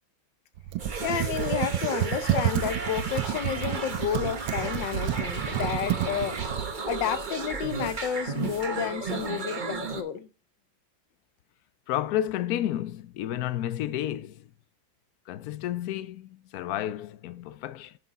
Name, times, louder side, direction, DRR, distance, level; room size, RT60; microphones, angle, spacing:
Computer keyboard, 0.6-6.7, right 12 dB, 80° right, 1.5 m, -30 dB
sound 1, 0.8-10.0, right 4 dB, 35° right, 0.9 m, -34 dB
voice 1, 1.0-6.4 6.8-10.3, left 9 dB, 70° left, 1.5 m, -31 dB
voice 2, 11.9-14.5 15.3-18.0, left 12 dB, 90° left, 0.8 m, -31 dB
9.9 x 5.9 x 4.1 m
omnidirectional pair, 2.2 m